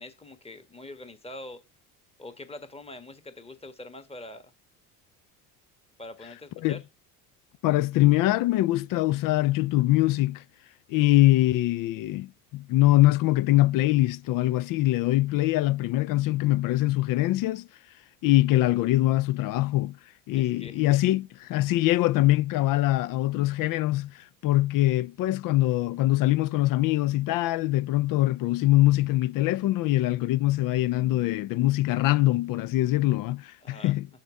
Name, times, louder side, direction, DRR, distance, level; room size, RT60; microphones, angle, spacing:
voice 1, 0.0-1.6 2.2-4.5 6.0-6.8 20.3-21.0 33.6-33.9, left 2 dB, 15° left, 1.5 m, -44 dB
voice 2, 7.6-10.4 10.9-17.7 18.2-20.0 20.3-34.1, left 16 dB, 50° left, 0.5 m, -23 dB
6.6 x 3.7 x 6.3 m
hypercardioid pair, 65°, 44 cm